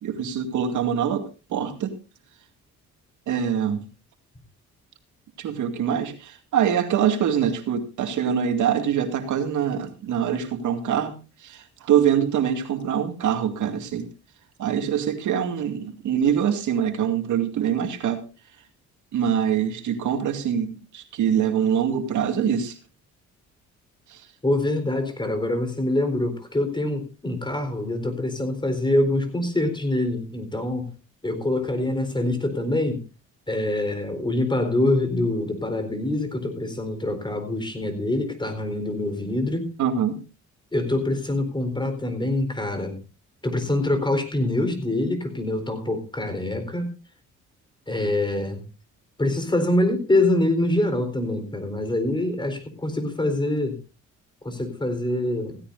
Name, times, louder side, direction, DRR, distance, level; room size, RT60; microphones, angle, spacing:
voice 1, 0.0-1.9 3.3-3.8 5.4-11.2 11.4-14.1 14.6-18.2 19.1-22.8 24.1-24.2 39.8-40.2, right 8 dB, 75° right, 6 dB, 2.3 m, -24 dB
voice 2, 24.4-30.9 31.2-33.0 33.5-39.7 40.7-43.0 43.4-46.9 47.9-48.6 49.2-53.8 54.4-55.6, left 1 dB, 15° left, 8 dB, 4.1 m, -25 dB
16.5 x 16.0 x 2.6 m, 0.31 s
cardioid pair, 90°, 30 cm